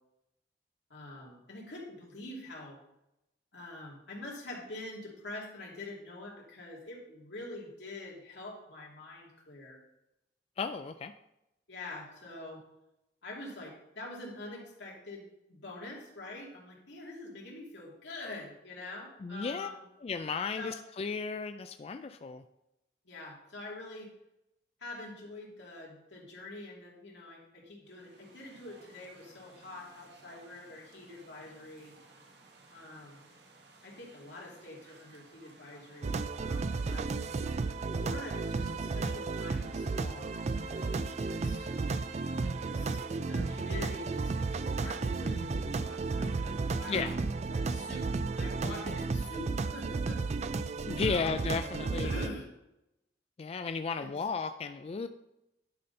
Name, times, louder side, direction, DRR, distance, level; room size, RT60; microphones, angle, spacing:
voice 1, 0.9-2.8 3.5-9.8 11.7-12.6 13.2-19.8 20.6-20.8 23.0-24.1 24.8-31.9 32.7-33.3 33.8-37.1 37.9-40.3 41.3-41.7 42.6-48.1 48.4-50.2 51.0-51.4 52.0-52.5 54.0-54.2, left 2 dB, 85° left, -2 dB, 2.6 m, -45 dB
voice 2, 10.6-11.1 19.2-19.7 20.0-22.4 46.9-47.1 50.9-52.1 53.4-55.1, left 5 dB, 35° left, 8 dB, 0.3 m, -34 dB
sound 1, 27.8-47.2, right 3 dB, 75° right, 1.4 m, -58 dB
sound 2, 36.0-52.3, right 3 dB, 40° right, 0.4 m, -33 dB
11.0 x 4.3 x 5.3 m, 0.87 s
head